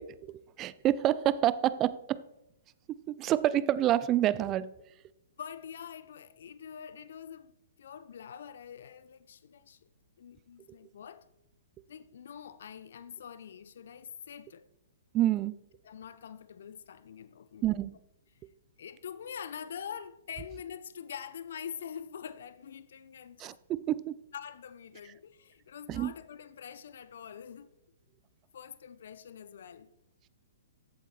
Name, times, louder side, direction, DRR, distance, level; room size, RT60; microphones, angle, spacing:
voice 1, 0.0-2.2 2.9-4.7 15.1-15.6 17.6-18.0 23.4-24.1 25.9-26.1, right 13 dB, 25° right, 0.5 m, -28 dB
voice 2, 5.4-7.5 7.8-9.8 10.2-11.2 11.9-14.6 15.8-17.6 18.8-23.6 24.3-27.7 28.5-29.9, left 8 dB, 65° left, 0.6 m, -45 dB
14.0 x 8.3 x 4.3 m
figure-of-eight pair, 120°, 0 cm